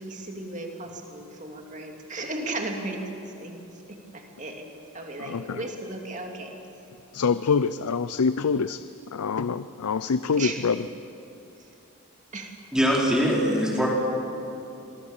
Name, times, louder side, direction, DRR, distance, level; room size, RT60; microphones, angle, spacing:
voice 1, 0.0-3.0 3.4-3.6 4.1-4.7 4.9-6.5 10.4-10.8 12.3-12.5, right 2 dB, 35° right, 2 dB, 2.6 m, -35 dB
voice 2, 5.2-5.7 7.1-8.8 9.1-10.9, left 5 dB, 90° left, 14 dB, 0.5 m, -25 dB
voice 3, 12.7-13.9, equal, 5° right, -3 dB, 4.0 m, -22 dB
26.0 x 22.0 x 7.3 m, 2.9 s
head